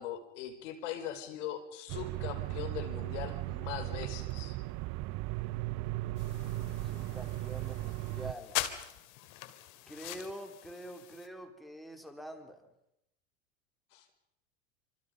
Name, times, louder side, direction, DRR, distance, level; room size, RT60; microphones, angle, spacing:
voice 1, 0.0-4.6 13.9-14.0, left 10 dB, 75° left, 7 dB, 5.1 m, -41 dB
sound 1, 1.9-8.3, right 18 dB, 50° right, 0.8 m, -37 dB
sound 2, 6.2-11.3, left 14 dB, 60° left, 2.9 m, -42 dB
voice 2, 6.9-8.6 9.9-12.6, right 1 dB, ahead, 5 dB, 3.3 m, -45 dB
28.0 x 25.5 x 5.3 m, 0.81 s
supercardioid pair, 120°, 36 cm